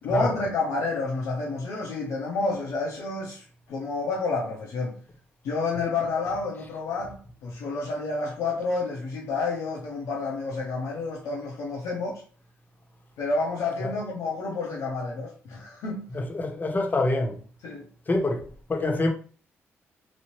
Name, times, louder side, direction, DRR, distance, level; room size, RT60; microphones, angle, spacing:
voice 1, 0.0-5.0 5.4-12.2 13.2-16.1 17.6-17.8, left 3 dB, 80° left, 0.7 m, -29 dB
voice 2, 16.1-17.4 18.1-19.1, left 2 dB, 35° left, 0.8 m, -26 dB
3.0 x 2.1 x 3.0 m
supercardioid pair, 60°, 5 cm